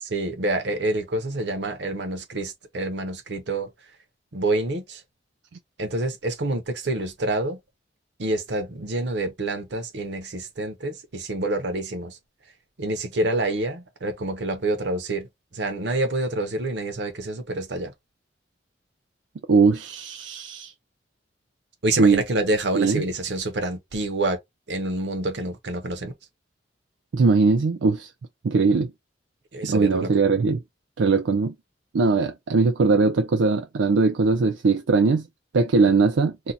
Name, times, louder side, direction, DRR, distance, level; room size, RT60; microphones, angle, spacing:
voice 1, 0.0-3.7 4.3-5.0 5.8-7.6 8.2-12.2 12.8-17.9 21.8-24.4 24.7-26.1 29.5-30.1, right 2 dB, 65° right, 0.8 m, -27 dB
voice 2, 19.5-20.7 22.0-22.2 22.7-23.0 27.1-28.1 28.4-28.9 29.6-30.6 31.0-31.5 31.9-35.3 35.5-36.3, right 4 dB, 80° right, 0.4 m, -20 dB
2.7 x 2.2 x 3.9 m
head